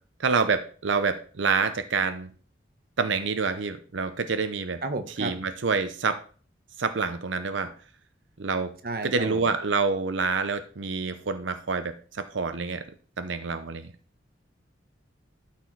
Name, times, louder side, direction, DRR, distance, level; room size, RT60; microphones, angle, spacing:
voice 1, 0.2-2.3 3.0-4.8 5.2-6.2 6.8-7.7 8.4-8.7 9.0-12.8 13.2-13.9, right 4 dB, 90° right, 9 dB, 0.7 m, -27 dB
voice 2, 4.8-5.3 8.8-9.4, right 2 dB, 50° right, 7 dB, 1.0 m, -32 dB
12.5 x 4.4 x 4.6 m, 0.41 s
head